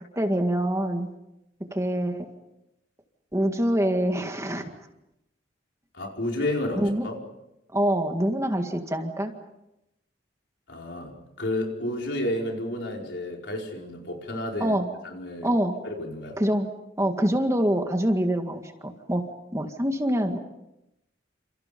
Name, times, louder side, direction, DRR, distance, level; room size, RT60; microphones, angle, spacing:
voice 1, 0.2-1.1 1.7-2.3 3.3-4.6 6.8-7.1 7.7-9.3 14.6-14.9 15.4-15.8 16.4-16.7 17.0-19.2 19.5-20.4, right 1 dB, 15° right, 5 dB, 1.9 m, -25 dB
voice 2, 5.9-7.2 10.7-14.8 15.0-15.5 15.8-16.4, left 1 dB, 65° left, 1 dB, 5.1 m, -31 dB
29.5 x 28.0 x 5.3 m, 0.89 s
head